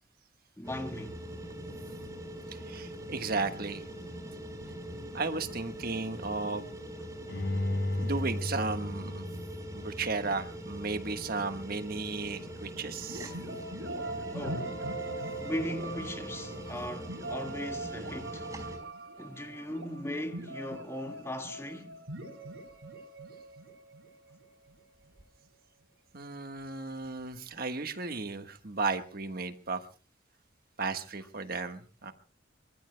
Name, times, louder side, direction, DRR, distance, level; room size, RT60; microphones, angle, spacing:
voice 1, 0.6-1.2 14.3-14.8 15.4-18.5 19.2-22.0, left 1 dB, 15° left, 1.8 m, -38 dB
sound 1, 0.6-18.8, equal, 15° right, 4.6 m, -43 dB
voice 2, 2.5-3.9 5.1-6.7 8.0-9.2 9.7-13.3 26.1-29.8 30.8-32.1, right 3 dB, 50° right, 1.4 m, -34 dB
Bowed string instrument, 7.3-10.4 10.8-10.9, left 1 dB, 70° left, 4.5 m, -34 dB
sound 2, 13.1-24.8, right 2 dB, 70° right, 7.8 m, -41 dB
25.5 x 24.5 x 2.2 m
head